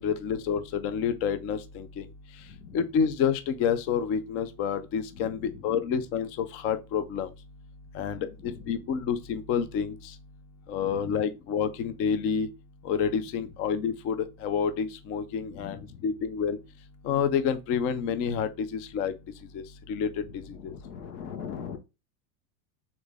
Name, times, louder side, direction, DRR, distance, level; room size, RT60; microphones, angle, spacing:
voice 1, 0.0-2.1 2.7-7.3 7.9-10.0 10.7-12.5 12.8-16.6 17.0-19.1 19.5-19.6 19.9-20.1 20.3-20.7, left 7 dB, 30° left, 0.4 m, -28 dB
voice 2, 2.4-2.8 5.1-5.8 8.0-8.9 10.7-11.3 13.3-13.5 15.4-16.0 20.2-21.8, left 7 dB, 80° left, 1.4 m, -43 dB
3.8 x 3.6 x 3.5 m
supercardioid pair, 135°, 48 cm